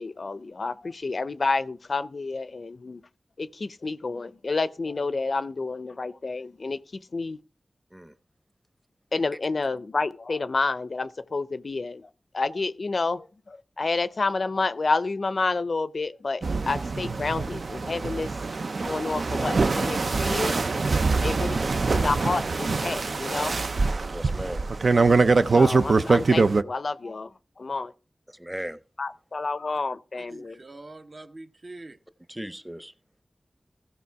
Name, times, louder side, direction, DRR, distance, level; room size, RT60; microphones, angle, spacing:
voice 1, 0.0-3.0 3.4-7.4 9.1-18.3 18.8-20.5 21.1-23.6 25.5-27.3 27.6-27.9 29.0-30.6, left 3 dB, 70° left, 0.5 m, -29 dB
sound 1, 16.4-26.6, right 3 dB, 70° right, 0.5 m, -23 dB
voice 2, 24.1-24.6 28.3-28.8 32.3-32.9, equal, 10° right, 0.8 m, -38 dB
voice 3, 30.2-32.0, right 2 dB, 55° right, 0.9 m, -44 dB
15.5 x 5.5 x 4.6 m
wide cardioid pair, 50°, 0 cm